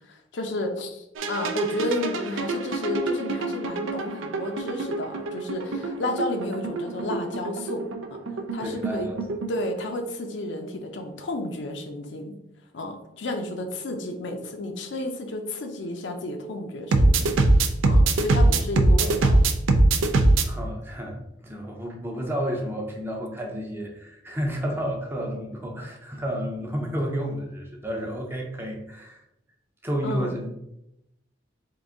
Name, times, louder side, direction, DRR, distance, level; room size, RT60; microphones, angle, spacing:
voice 1, 0.1-8.2 8.5-9.1 9.5-12.3 12.7-17.4 17.8-19.4 30.0-30.3, left 1 dB, 70° left, 5 dB, 0.5 m, -32 dB
sound 1, 1.2-9.8 16.9-20.4, right 2 dB, 85° right, 0.4 m, -23 dB
voice 2, 8.4-9.4 20.5-29.2 29.8-30.5, equal, 10° right, 0 dB, 0.5 m, -31 dB
3.8 x 2.6 x 3.6 m, 0.85 s
head